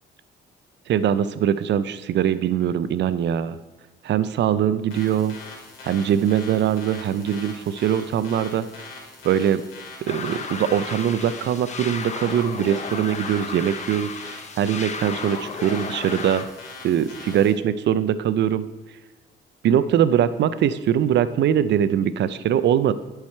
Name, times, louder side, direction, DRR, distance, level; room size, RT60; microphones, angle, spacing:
voice 1, 0.9-3.6 4.0-5.4 5.8-8.7 9.2-9.6 10.1-16.4 16.8-18.7 19.6-22.9, right 9 dB, 65° right, 14 dB, 0.5 m, -22 dB
sound 1, 4.9-17.5, left 3 dB, 80° left, 2.2 m, -42 dB
sound 2, 10.1-16.4, left 5 dB, 35° left, 0.7 m, -34 dB
10.5 x 4.8 x 4.4 m, 1.2 s
cardioid pair, 90°, 20 cm